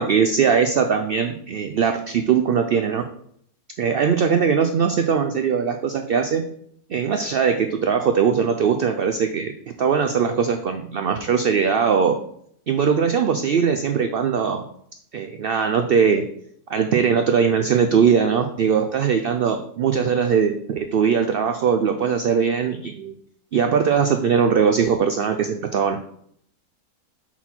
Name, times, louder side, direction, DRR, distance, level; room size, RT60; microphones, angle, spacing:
voice 1, 0.0-3.0 3.8-6.4 6.9-9.5 9.8-12.2 12.7-14.6 15.1-16.2 16.7-23.1 23.5-26.0, right 6 dB, 85° right, 6 dB, 0.5 m, -20 dB
5.7 x 4.2 x 4.4 m, 0.66 s
omnidirectional pair, 1.5 m